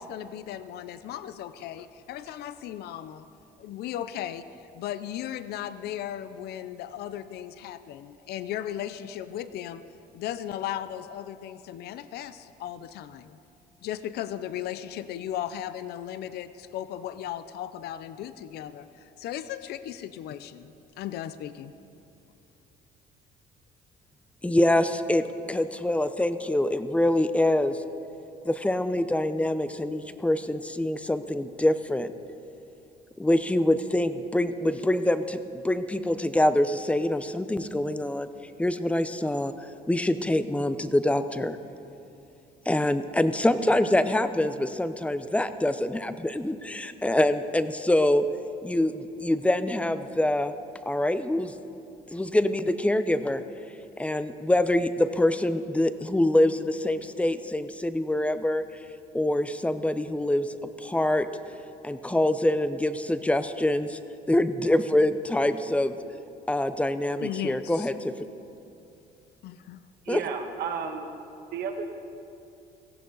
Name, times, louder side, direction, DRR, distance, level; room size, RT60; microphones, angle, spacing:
voice 1, 0.0-3.3 3.6-9.8 10.1-13.4 13.8-21.7 67.2-67.9 69.4-69.8, left 11 dB, 70° left, 13 dB, 0.6 m, -36 dB
voice 2, 24.4-27.8 28.4-32.1 33.2-38.3 38.6-39.5 39.9-41.6 42.7-48.3 48.6-50.5 50.9-51.5 52.1-53.4 54.0-58.6 59.1-61.3 61.8-64.0 64.3-66.0 66.5-68.1 70.1-70.2, left 1 dB, 5° left, 11 dB, 0.6 m, -25 dB
voice 3, 70.0-71.1 71.5-71.9, right 6 dB, 70° right, 4 dB, 1.6 m, -32 dB
17.5 x 15.5 x 4.0 m, 2.7 s
cardioid pair, 110°, 17 cm